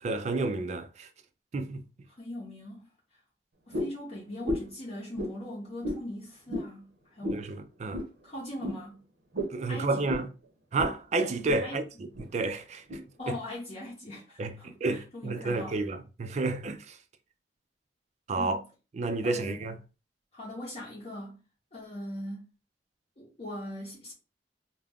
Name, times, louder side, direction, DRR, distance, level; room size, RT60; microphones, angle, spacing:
voice 1, 0.0-1.1 1.5-1.8 7.3-8.0 9.5-10.3 10.7-11.8 12.3-12.8 13.3-13.4 14.4-17.0 18.3-18.6 18.9-19.8, right 3 dB, 40° right, 0.4 m, -30 dB
voice 2, 2.1-2.9 3.7-7.5 8.2-9.0 9.7-10.3 11.6-11.8 13.2-15.8 18.4-18.7 19.2-19.6 20.3-21.4 21.7-22.5 23.2-24.1, left 1 dB, 35° left, 0.7 m, -40 dB
sound 1, 3.7-4.0 4.4-4.8 5.2-5.3 5.8-6.0 6.5-6.7 7.2-7.4 7.9-8.1 8.6-8.8 9.3-9.6 10.1-10.3 10.8-11.0 11.3-11.6 12.1-12.3 12.9-13.0, left 1 dB, 70° right, 0.7 m, -33 dB
2.3 x 2.1 x 3.4 m
head